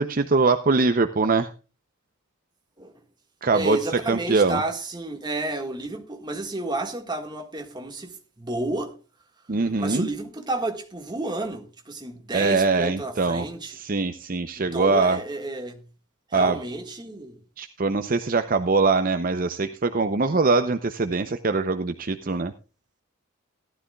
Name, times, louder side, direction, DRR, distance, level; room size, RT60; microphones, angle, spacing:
voice 1, 0.0-1.5 3.4-3.8 4.1-4.6 9.5-10.1 12.3-15.2 16.3-16.6 17.6-22.5, right 3 dB, 40° right, 0.6 m, -22 dB
voice 2, 3.5-9.0 9.8-13.8 14.6-15.8 16.3-17.4, right 2 dB, 20° right, 1.7 m, -31 dB
17.0 x 12.5 x 2.3 m
head